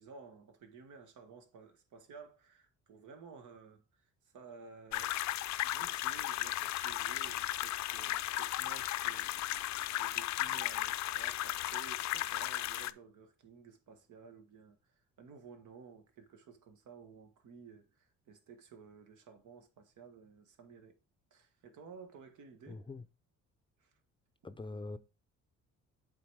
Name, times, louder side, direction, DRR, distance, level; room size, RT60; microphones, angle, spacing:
voice 1, 0.0-5.2 5.6-9.6 10.0-14.8 15.2-21.0 21.3-22.8 23.8-23.9, right 5 dB, 80° right, 1.5 m, -54 dB
sound 1, 4.9-12.9, left 14 dB, 65° left, 0.5 m, -35 dB
voice 2, 22.7-23.0 24.4-25.0, left 3 dB, 15° left, 0.5 m, -43 dB
7.8 x 4.0 x 4.6 m
cardioid pair, 90°, 30 cm